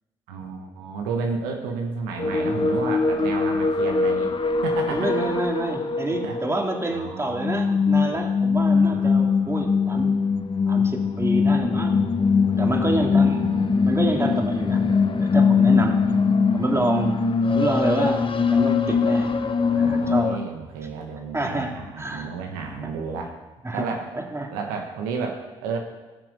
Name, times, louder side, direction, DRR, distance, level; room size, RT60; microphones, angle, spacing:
voice 1, 0.3-4.3 4.6-5.1 6.2-8.1 8.7-9.8 12.6-13.8 15.6-17.0 19.7-23.4 23.7-24.1 24.5-25.8, right 5 dB, 80° right, 2 dB, 1.3 m, -33 dB
sound 1, 2.2-20.3, left 5 dB, 35° left, 1.0 m, -22 dB
voice 2, 4.9-10.2 10.7-12.0 12.6-13.5 13.8-16.0 16.5-17.2 17.5-19.3 19.8-20.4 21.3-22.3 23.6-23.9 24.2-24.5, right 1 dB, 20° right, 2 dB, 2.4 m, -27 dB
17.5 x 6.1 x 5.4 m, 1.1 s
hypercardioid pair, 45°, 15 cm